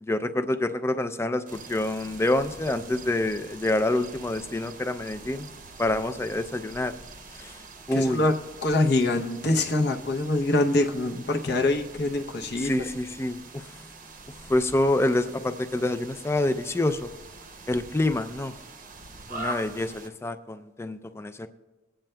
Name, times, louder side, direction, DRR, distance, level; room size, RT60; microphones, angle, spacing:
voice 1, 0.0-5.5 5.8-6.9 7.3-7.6 7.9-8.2 12.6-13.6 14.5-17.1 17.7-18.5 19.3-21.5, left 1 dB, 15° left, 10 dB, 0.3 m, -27 dB
sound 1, 1.5-20.1, right 3 dB, 40° right, 0.7 m, -44 dB
voice 2, 7.9-12.9, left 2 dB, 55° left, 4 dB, 0.7 m, -24 dB
22.5 x 8.9 x 2.2 m, 1.2 s
head